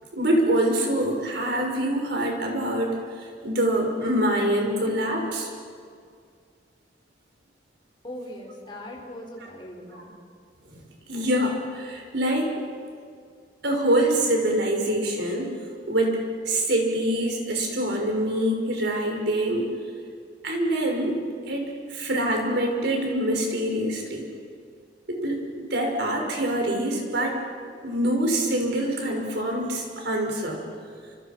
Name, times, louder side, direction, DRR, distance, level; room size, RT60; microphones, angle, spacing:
voice 1, 0.1-5.5 9.9-10.0 10.7-10.8 11.1-12.5 13.6-15.6 15.9-19.7 20.4-21.2 21.5-21.6 21.9-24.3 25.1-27.3 27.8-30.6, right 1 dB, 65° right, 2 dB, 5.7 m, -25 dB
voice 2, 8.0-10.1, left 1 dB, 25° left, -1 dB, 5.7 m, -40 dB
29.5 x 27.0 x 6.0 m, 2.2 s
head